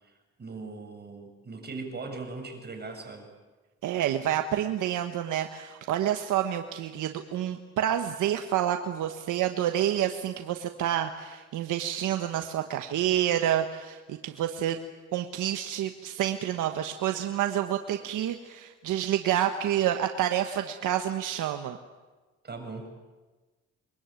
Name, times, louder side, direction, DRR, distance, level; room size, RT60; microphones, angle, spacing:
voice 1, 0.0-3.3 22.4-22.9, right 3 dB, 35° right, 4 dB, 7.8 m, -40 dB
voice 2, 3.8-14.8 15.1-21.8, right 11 dB, 85° right, 6 dB, 1.5 m, -28 dB
27.5 x 22.5 x 9.2 m, 1.3 s
cardioid pair, 90°, 30 cm